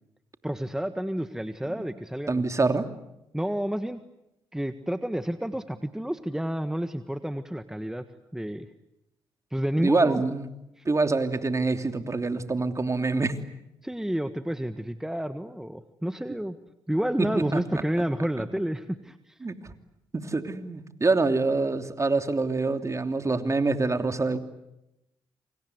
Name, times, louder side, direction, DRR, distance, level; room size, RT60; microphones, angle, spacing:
voice 1, 0.4-2.4 3.3-4.0 4.5-8.0 8.3-8.7 9.5-10.2 10.8-10.9 13.8-16.6 16.9-19.4, equal, 5° right, 10 dB, 1.5 m, -30 dB
voice 2, 2.3-2.9 9.8-10.5 10.8-13.4 17.2-17.8 19.4-19.6 20.1-24.4, right 3 dB, 30° right, 8 dB, 3.0 m, -25 dB
28.0 x 26.0 x 8.1 m, 0.89 s
supercardioid pair, 60°, 9 cm